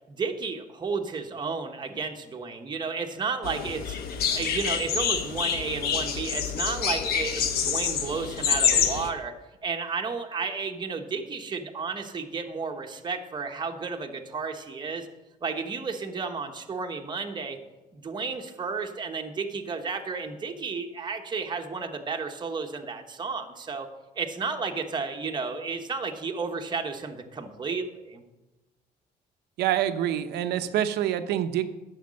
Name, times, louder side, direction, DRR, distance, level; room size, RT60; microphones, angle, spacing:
voice 1, 0.1-4.0 4.3-9.3 9.6-15.1 15.4-17.6 17.9-23.9 24.1-28.2, right 5 dB, 25° right, 3 dB, 1.1 m, -32 dB
sound 1, 3.4-9.1, left 7 dB, 65° left, 1.2 m, -27 dB
voice 2, 29.6-31.6, right 11 dB, 80° right, 10 dB, 0.8 m, -26 dB
10.5 x 6.6 x 6.4 m, 1.1 s
cardioid pair, 110°, 17 cm